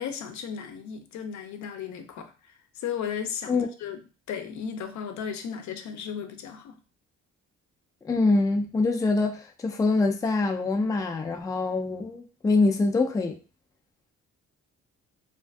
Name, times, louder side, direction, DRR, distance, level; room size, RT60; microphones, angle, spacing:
voice 1, 0.0-4.0 4.3-6.8, left 7 dB, 70° left, 6 dB, 0.5 m, -35 dB
voice 2, 8.0-13.4, left 3 dB, 10° left, 3 dB, 0.3 m, -24 dB
2.5 x 2.4 x 2.3 m, 0.34 s
cardioid pair, 90°, 30 cm